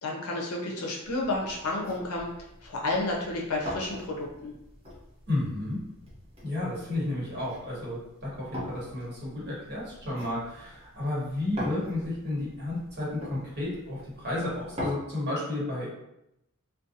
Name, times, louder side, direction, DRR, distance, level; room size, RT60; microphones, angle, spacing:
voice 1, 0.0-2.3 2.6-4.5, left 2 dB, 85° left, -1 dB, 0.5 m, -31 dB
sound 1, 1.0-14.9, left 1 dB, 30° right, 0.8 m, -43 dB
voice 2, 5.3-5.8 6.4-15.9, left 1 dB, 50° right, -7 dB, 1.1 m, -32 dB
2.5 x 2.2 x 2.6 m, 0.84 s
head